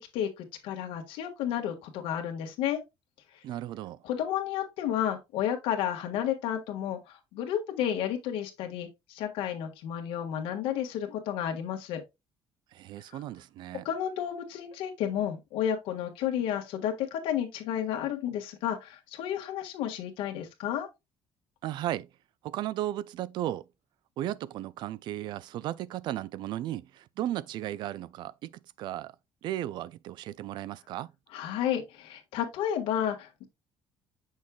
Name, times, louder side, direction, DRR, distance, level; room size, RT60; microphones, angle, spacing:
voice 1, 0.0-2.8 4.0-12.0 13.8-20.9 31.3-33.5, left 10 dB, 90° left, 1.6 m, -32 dB
voice 2, 3.4-4.0 12.7-13.9 21.6-22.1 22.4-23.7 24.2-28.5 28.8-29.1 29.4-31.1, right 13 dB, 60° right, 0.4 m, -35 dB
7.2 x 6.3 x 2.3 m
cardioid pair, 165°, 9 cm